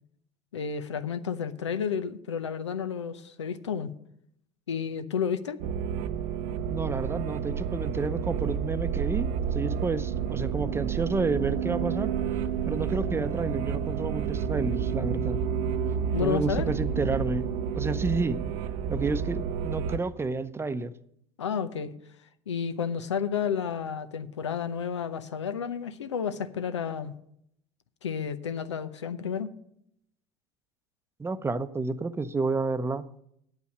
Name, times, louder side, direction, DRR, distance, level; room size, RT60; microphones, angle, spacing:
voice 1, 0.5-3.9 4.7-5.6 16.1-16.7 21.4-21.9 22.5-27.1 28.0-29.5, left 7 dB, 85° left, 12 dB, 0.7 m, -31 dB
sound 1, 5.6-20.0, right 7 dB, 65° right, 0.7 m, -30 dB
voice 2, 6.7-12.1 12.6-15.4 16.2-17.5 17.7-18.4 18.9-20.9 31.2-33.0, right 3 dB, 15° right, 12 dB, 0.7 m, -30 dB
9.2 x 8.3 x 6.6 m, 0.71 s
hypercardioid pair, 75°, 15 cm